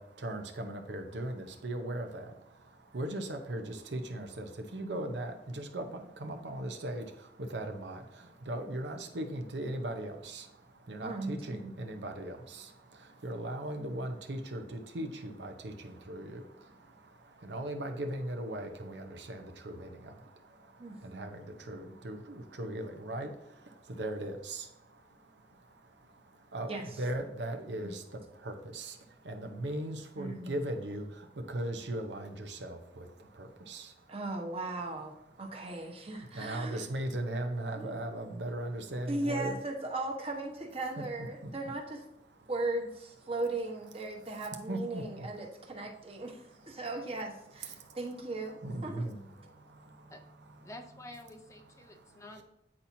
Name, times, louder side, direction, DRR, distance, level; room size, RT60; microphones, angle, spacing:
voice 1, 0.0-34.1 36.2-39.6 41.0-41.1 41.4-41.5 44.7-45.3 46.2-46.8 47.6-48.0 48.6-50.1 51.9-52.0, right 1 dB, 85° right, 5 dB, 0.8 m, -39 dB
voice 2, 11.0-11.8 20.8-21.0 26.7-27.0 27.8-27.9 30.2-30.7 34.1-35.1 35.4-36.8 37.8-38.0 39.1-42.0 42.5-46.4 46.7-49.4, right 2 dB, 35° right, 1 dB, 1.2 m, -37 dB
voice 3, 50.6-52.4, left 1 dB, 15° left, 6 dB, 0.5 m, -49 dB
8.7 x 4.2 x 2.7 m, 0.88 s
head